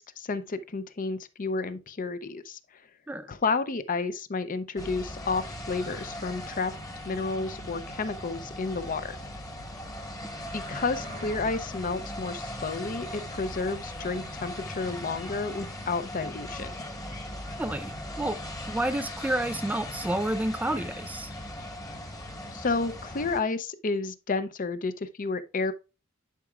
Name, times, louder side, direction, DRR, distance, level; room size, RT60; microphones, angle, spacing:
voice 1, 0.0-2.6 3.3-6.7 7.0-9.2 10.5-16.7 22.5-25.7, left 4 dB, 40° left, 0.6 m, -31 dB
sound 1, 4.8-23.4, left 1 dB, 20° left, 1.2 m, -39 dB
sound 2, 10.0-11.4, right 3 dB, 45° right, 0.7 m, -48 dB
voice 2, 17.6-18.4 18.7-21.3, right 1 dB, 10° right, 0.3 m, -30 dB
10.5 x 4.8 x 2.4 m
head